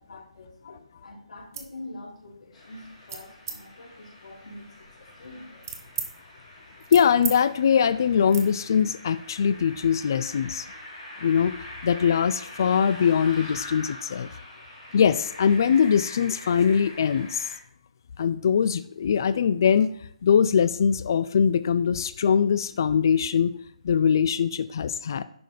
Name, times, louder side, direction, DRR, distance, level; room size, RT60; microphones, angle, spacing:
voice 1, 0.0-5.7, left 2 dB, 80° left, -4 dB, 3.8 m, -45 dB
sound 1, 1.4-1.7 2.2-2.5 3.1-3.6 4.2-6.1 6.5-7.4 7.6-7.8 8.3-8.5, right 6 dB, 30° right, 1.0 m, -37 dB
sound 2, 2.5-17.5, left 1 dB, 15° left, 2.9 m, -44 dB
voice 2, 6.9-10.7 11.2-11.5 11.8-14.3 14.9-17.5 18.2-19.9 20.2-23.5 23.8-25.2, left 7 dB, 35° left, 14 dB, 0.3 m, -22 dB
10.5 x 5.0 x 4.0 m, 0.66 s
hypercardioid pair, 170°, 4 cm